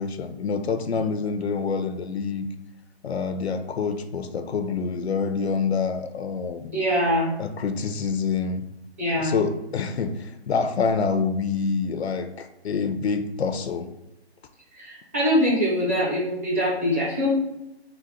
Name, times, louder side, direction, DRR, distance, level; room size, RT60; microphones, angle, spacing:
voice 1, 0.0-2.5 3.0-6.8 7.4-8.6 9.2-13.9, left 5 dB, 80° left, 9 dB, 0.5 m, -27 dB
voice 2, 6.7-7.3 9.0-9.4 14.7-17.3, equal, 15° right, -6 dB, 0.5 m, -23 dB
3.9 x 2.1 x 4.2 m, 0.89 s
hypercardioid pair, 150°, 32 cm